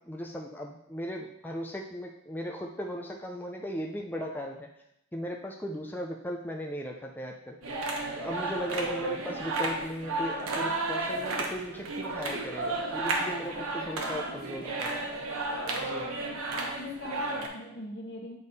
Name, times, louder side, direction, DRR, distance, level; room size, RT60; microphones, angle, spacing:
voice 1, 0.0-4.7 5.1-7.6 8.2-15.1 15.8-16.1, equal, 10° left, 0 dB, 0.4 m, -37 dB
sound 1, 7.6-17.5, right 2 dB, 80° right, 1.0 m, -33 dB
voice 2, 16.2-18.4, left 2 dB, 60° left, 1 dB, 1.2 m, -41 dB
8.4 x 3.6 x 4.1 m, 0.80 s
head